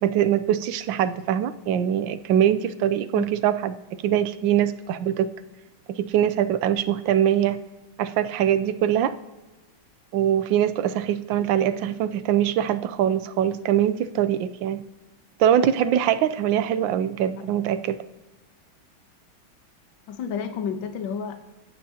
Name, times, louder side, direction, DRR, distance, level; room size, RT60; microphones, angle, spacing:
voice 1, 0.0-3.8 4.0-5.3 5.9-7.6 8.0-9.2 10.1-14.8 15.4-18.0, right 10 dB, 75° right, 13 dB, 1.2 m, -23 dB
voice 2, 20.1-21.4, left 7 dB, 70° left, 6 dB, 1.7 m, -31 dB
23.0 x 8.7 x 2.8 m, 1.2 s
omnidirectional pair, 2.3 m